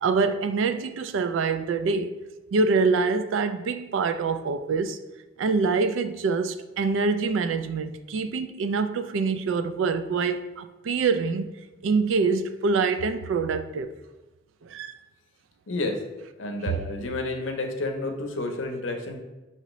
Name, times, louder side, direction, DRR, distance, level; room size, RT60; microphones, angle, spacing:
voice 1, 0.0-2.2 2.5-5.0 5.4-11.5 11.8-13.9 14.6-15.0 16.6-16.7, right 4 dB, 75° right, 0.3 m, -25 dB
voice 2, 15.7-16.0 16.4-19.2, left 2 dB, 75° left, 0.6 m, -30 dB
6.0 x 2.8 x 3.0 m
head